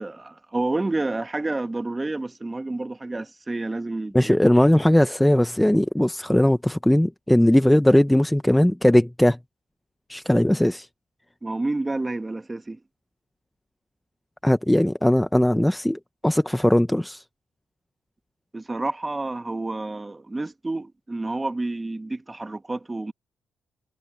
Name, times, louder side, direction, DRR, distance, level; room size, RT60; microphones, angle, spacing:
voice 1, 0.0-4.5 11.4-12.8 18.5-23.1, right 2 dB, 15° right, 1.1 m, -29 dB
voice 2, 4.1-9.4 10.1-10.9 14.4-17.2, left 1 dB, 5° left, 0.6 m, -19 dB
cardioid pair, 125°, 0 cm